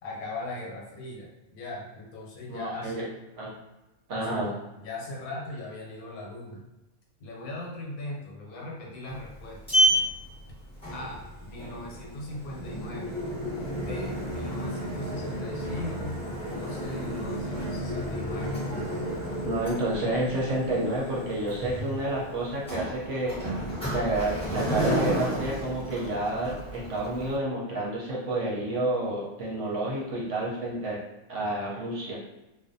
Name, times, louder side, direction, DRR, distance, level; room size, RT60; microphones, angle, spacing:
voice 1, 0.0-3.1 4.1-6.6 7.2-9.6 10.9-13.2 13.8-16.3 16.5-18.6, left 2 dB, 80° left, -2 dB, 1.2 m, -39 dB
voice 2, 2.5-3.0 3.4-3.5 4.1-4.5 19.4-23.4 23.8-31.0 31.3-32.2, right 1 dB, 65° right, -4 dB, 0.8 m, -30 dB
Sliding door, 9.1-27.4, equal, 5° left, 0.7 m, -31 dB
2.5 x 2.2 x 2.5 m, 1.0 s
omnidirectional pair, 1.6 m